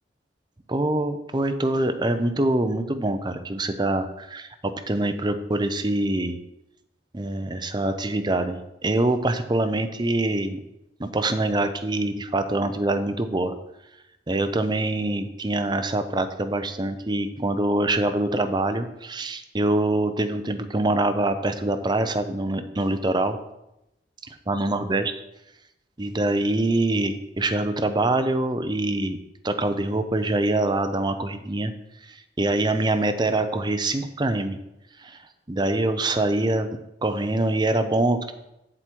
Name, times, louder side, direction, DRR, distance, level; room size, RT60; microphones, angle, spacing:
voice 1, 0.7-4.5 4.9-6.4 7.1-10.6 11.0-13.5 14.3-23.4 24.5-25.1 26.0-29.2 29.4-31.7 32.1-34.6 35.0-35.2 35.5-38.3, right 2 dB, 25° right, 8 dB, 0.7 m, -24 dB
7.8 x 7.6 x 4.6 m, 0.87 s
head